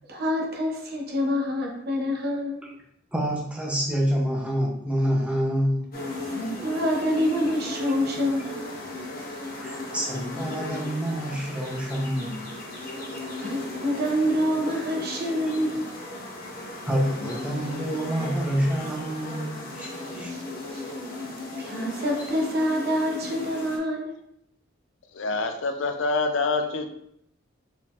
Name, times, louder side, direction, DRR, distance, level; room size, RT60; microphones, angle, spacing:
voice 1, 0.1-2.8 6.2-8.6 13.4-15.8 20.2-20.8 21.6-24.2, equal, 55° right, 0 dB, 0.8 m, -27 dB
voice 2, 3.1-5.9 9.5-12.5 16.8-20.3, equal, 5° right, -2 dB, 0.7 m, -27 dB
sound 1, 5.9-23.8, left 2 dB, 50° left, 1.0 m, -36 dB
voice 3, 25.1-26.9, left 3 dB, 70° left, 6 dB, 0.5 m, -26 dB
4.1 x 3.9 x 2.4 m, 0.74 s
head